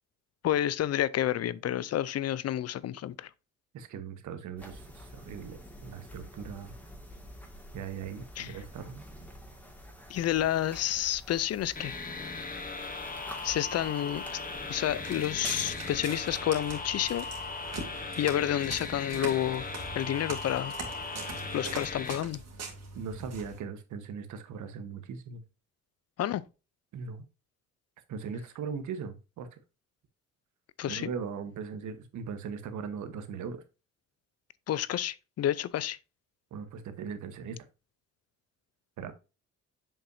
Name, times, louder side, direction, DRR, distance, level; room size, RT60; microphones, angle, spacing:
voice 1, 0.4-3.3 8.4-8.6 10.1-12.0 13.4-14.4 14.7-17.3 18.2-19.7 19.9-20.8 21.5-22.4 26.2-26.4 30.8-31.1 34.7-36.0, left 12 dB, 55° left, 0.5 m, -30 dB
voice 2, 3.7-6.7 7.7-9.0 22.9-25.4 26.9-27.2 28.1-29.5 30.8-33.6 36.5-37.6 39.0-39.1, right 6 dB, 75° right, 1.2 m, -39 dB
sound 1, 4.6-18.0, equal, 5° left, 2.1 m, -49 dB
sound 2, 11.8-22.2, left 4 dB, 30° left, 1.3 m, -38 dB
Walk footsteps, 14.9-23.6, right 3 dB, 55° right, 2.6 m, -42 dB
7.3 x 5.4 x 2.7 m
cardioid pair, 90°, 30 cm